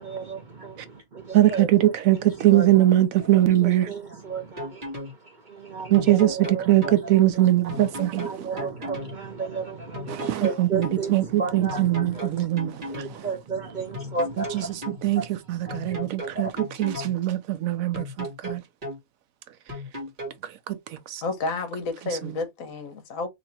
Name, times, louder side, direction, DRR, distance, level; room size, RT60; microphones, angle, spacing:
voice 1, 0.0-1.7 2.1-2.7 3.3-7.5 8.2-12.5 12.9-15.3 15.6-16.0 16.3-16.5, right 4 dB, 45° right, 0.6 m, -34 dB
voice 2, 1.3-3.9 5.9-8.5 10.1-13.3 14.4-18.6 20.4-21.2 22.2-22.4, right 14 dB, 75° right, 1.0 m, -22 dB
sound 1, 4.3-5.1 5.9-7.0 7.7-9.1 9.9-11.0 11.7-13.1 13.9-15.0 15.7-17.1 17.9-19.0 19.7-20.4, left 1 dB, 30° right, 1.3 m, -35 dB
voice 3, 21.2-23.3, left 3 dB, 70° left, 1.3 m, -30 dB
3.1 x 2.8 x 4.1 m
omnidirectional pair, 1.5 m